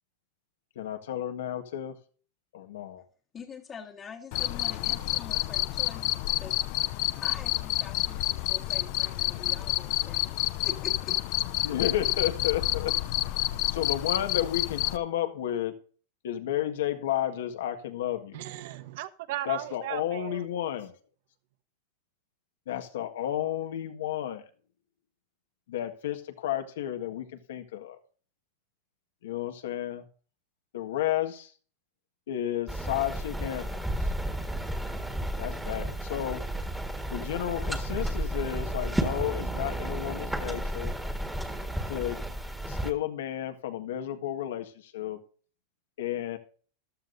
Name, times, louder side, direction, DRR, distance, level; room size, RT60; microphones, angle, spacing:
voice 1, 0.7-1.9 2.5-3.0 11.6-12.9 13.7-15.7 16.2-18.4 19.4-20.9 22.7-24.4 25.7-28.0 29.2-30.0 30.7-31.5 32.3-34.1 35.4-36.4 37.1-40.9 41.9-42.2 42.7-45.2 46.0-46.4, left 11 dB, 80° left, 1.7 m, -32 dB
voice 2, 3.3-6.6 7.2-11.2, left 6 dB, 25° left, 1.5 m, -45 dB
Cricket, 4.3-15.0, left 18 dB, 50° left, 0.6 m, -29 dB
voice 3, 18.3-20.5, right 14 dB, 65° right, 1.1 m, -37 dB
sound 1, 32.7-42.9, right 1 dB, 5° right, 1.7 m, -32 dB
14.5 x 12.0 x 2.7 m
supercardioid pair, 140°, 0 cm